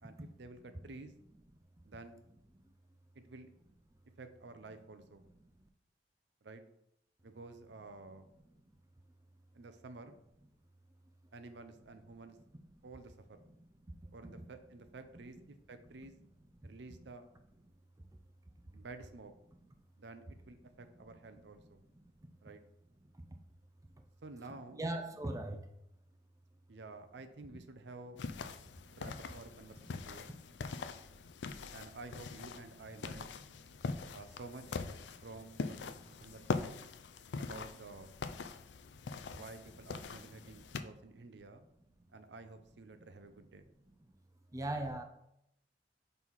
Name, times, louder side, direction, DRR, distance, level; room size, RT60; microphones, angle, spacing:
voice 1, 0.0-1.1 1.8-2.2 3.1-3.5 4.2-5.2 6.4-6.6 7.2-8.3 9.5-10.2 11.3-12.4 12.8-13.4 14.1-16.2 16.6-17.3 18.7-19.3 20.0-21.8 22.4-22.6 24.2-24.8 26.7-28.2 28.9-30.3 31.7-33.3 34.1-34.8 35.2-36.8 37.4-38.1 39.3-41.6 42.1-43.6, right 3 dB, 75° right, 9 dB, 0.6 m, -51 dB
voice 2, 24.8-25.7 44.5-45.0, right 1 dB, 20° right, 5 dB, 0.5 m, -38 dB
sound 1, 28.2-40.8, left 4 dB, 75° left, 0.4 m, -43 dB
5.5 x 4.1 x 4.6 m, 0.79 s
head